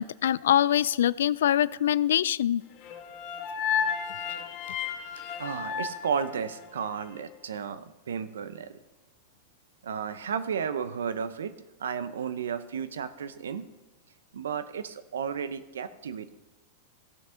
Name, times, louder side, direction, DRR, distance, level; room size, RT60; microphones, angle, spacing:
voice 1, 0.0-2.6, left 11 dB, 75° left, 21 dB, 0.3 m, -24 dB
sound 1, 2.8-7.0, left 7 dB, 45° left, 1.3 m, -33 dB
voice 2, 5.4-8.8 9.8-11.5 11.8-13.7 14.3-16.3, right 7 dB, 85° right, 13 dB, 0.7 m, -33 dB
15.5 x 6.2 x 5.7 m, 1.1 s
hypercardioid pair, 110°, 0 cm